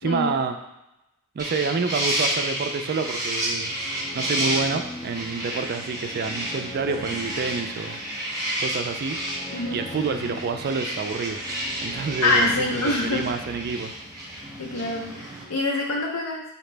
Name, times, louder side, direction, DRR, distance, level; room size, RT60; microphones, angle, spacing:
voice 1, 0.0-0.6 1.4-3.7 4.1-8.0 8.6-9.2 9.7-11.4 11.8-13.9, right 4 dB, 45° right, 6 dB, 0.4 m, -28 dB
sound 1, 1.4-15.4, right 1 dB, 15° right, 0.9 m, -31 dB
sound 2, 3.3-14.6, left 1 dB, 30° left, 0.4 m, -42 dB
voice 2, 9.5-9.8 12.2-13.4 14.6-16.4, left 2 dB, 75° left, -1 dB, 0.6 m, -25 dB
5.0 x 2.8 x 3.3 m, 0.91 s
head